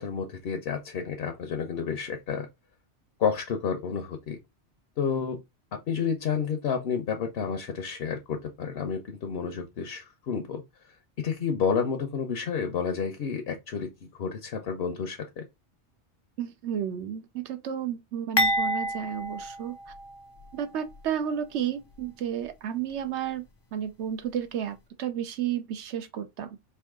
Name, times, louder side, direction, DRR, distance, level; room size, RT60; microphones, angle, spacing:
voice 1, 0.0-2.5 3.2-4.4 5.0-5.4 5.9-10.6 11.2-13.9 14.2-15.4, left 6 dB, 60° left, 0.9 m, -30 dB
voice 2, 16.4-19.8 20.5-23.4 23.7-26.6, right 9 dB, 70° right, 0.9 m, -32 dB
sound 1, 18.4-20.5 20.9-21.0 21.9-22.1, equal, 35° left, 0.4 m, -29 dB
4.7 x 2.7 x 3.5 m
omnidirectional pair, 1.2 m